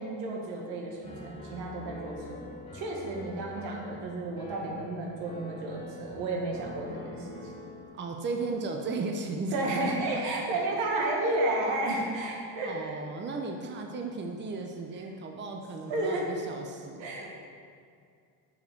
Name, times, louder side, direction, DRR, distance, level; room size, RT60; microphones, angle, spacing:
voice 1, 0.0-2.5 2.7-7.7 9.5-13.0 15.9-16.3 17.0-17.3, right 2 dB, 75° right, -1 dB, 1.9 m, -32 dB
Piano, 1.0-7.9, left 2 dB, 10° left, 1.9 m, -45 dB
voice 2, 7.9-9.6 10.3-10.4 10.8-11.1 12.6-17.3, right 3 dB, 25° right, 2 dB, 0.8 m, -36 dB
6.7 x 5.6 x 6.6 m, 2.3 s
supercardioid pair, 105°, 44 cm